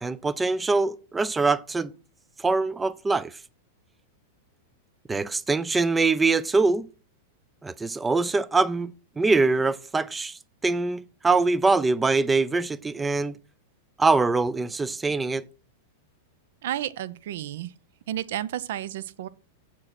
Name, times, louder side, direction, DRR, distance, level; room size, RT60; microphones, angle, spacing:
voice 1, 0.0-1.9 2.4-3.3 5.1-6.9 7.6-13.4 14.0-15.4, right 3 dB, 10° right, 0.4 m, -23 dB
voice 2, 16.6-17.7 18.1-19.3, right 12 dB, 65° right, 0.6 m, -32 dB
7.7 x 7.4 x 6.0 m
supercardioid pair, 160°, 0 cm